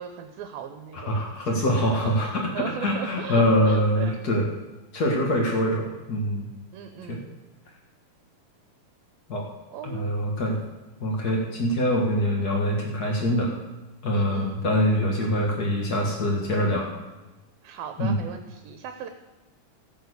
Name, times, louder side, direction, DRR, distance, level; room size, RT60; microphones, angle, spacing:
voice 1, 0.0-4.3 6.7-7.3 9.7-10.1 14.1-14.6 17.6-19.1, right 8 dB, 75° right, 7 dB, 2.4 m, -38 dB
voice 2, 1.1-4.5 4.9-6.5 7.1-7.2 9.3-9.4 9.8-10.6 11.0-13.5 14.0-16.9 18.0-18.2, equal, 60° left, 0 dB, 1.0 m, -24 dB
15.0 x 6.7 x 8.0 m, 1.2 s
omnidirectional pair, 4.4 m